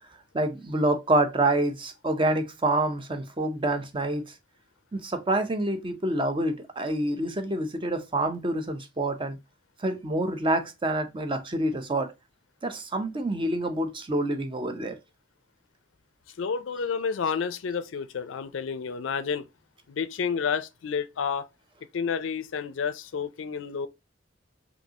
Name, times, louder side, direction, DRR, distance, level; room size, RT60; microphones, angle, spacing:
voice 1, 0.3-4.3 4.9-9.4 9.8-12.1 12.6-15.0, right 1 dB, 25° right, 0.6 m, -27 dB
voice 2, 16.4-19.5 19.9-21.5 21.9-23.9, left 6 dB, 75° left, 0.4 m, -30 dB
5.3 x 2.7 x 2.8 m
head